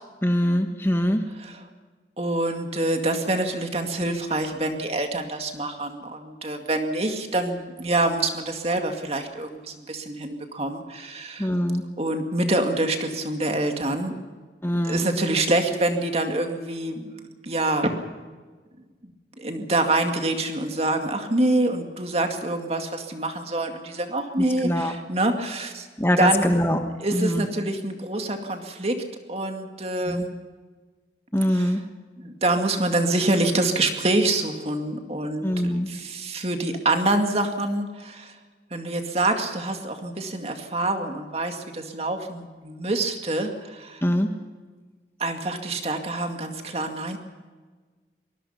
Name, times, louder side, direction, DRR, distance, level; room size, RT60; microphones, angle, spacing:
voice 1, 0.2-1.2 11.4-11.8 14.6-15.1 24.4-24.9 26.0-26.8 27.1-27.5 30.1-30.2 31.3-31.8 35.4-35.9 44.0-44.3, equal, 15° left, 5 dB, 1.3 m, -23 dB
voice 2, 2.2-11.5 12.0-14.1 14.8-17.1 17.4-17.9 19.4-25.9 26.2-26.5 27.0-29.0 29.3-30.3 31.5-31.7 32.2-38.3 38.7-44.0 45.2-47.2, right 2 dB, 35° right, 5 dB, 2.2 m, -26 dB
24.0 x 20.0 x 5.7 m, 1.4 s
head